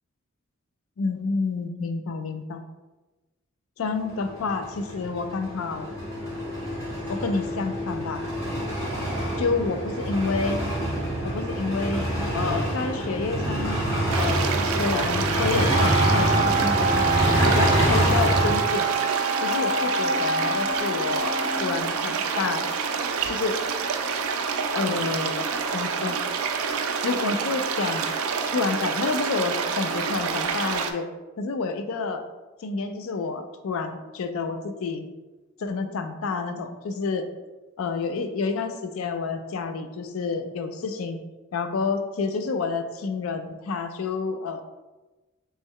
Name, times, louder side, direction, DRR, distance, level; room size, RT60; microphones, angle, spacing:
voice 1, 1.0-2.6 3.8-5.9 7.1-8.2 9.4-10.6 11.2-12.1 12.3-13.8 14.1-18.9 19.4-22.6 23.3-23.6 24.7-25.5 25.7-26.2 27.0-28.1 28.5-31.1 31.4-32.2 32.6-35.1 35.6-37.3 37.8-41.2 41.5-44.6, left 4 dB, 80° left, 7 dB, 0.4 m, -29 dB
sound 1, 4.0-18.5, right 1 dB, 15° left, 1.3 m, -26 dB
sound 2, 14.1-30.9, right 5 dB, 90° right, 0.4 m, -28 dB
Wind instrument woodwind instrument, 15.6-21.7, right 3 dB, 20° right, 0.7 m, -27 dB
3.2 x 3.1 x 3.6 m, 1.1 s
head